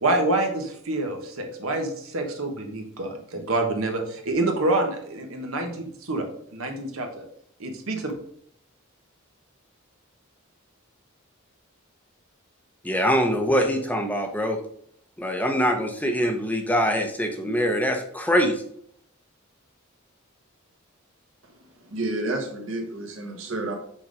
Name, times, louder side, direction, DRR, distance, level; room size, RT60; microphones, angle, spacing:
voice 1, 0.0-7.3 7.6-8.1, right 2 dB, 85° right, 3 dB, 1.3 m, -27 dB
voice 2, 12.8-14.6 15.2-18.5, equal, 10° left, 5 dB, 0.7 m, -23 dB
voice 3, 21.9-23.8, right 2 dB, 65° right, 3 dB, 1.4 m, -30 dB
6.2 x 3.9 x 4.8 m, 0.65 s
head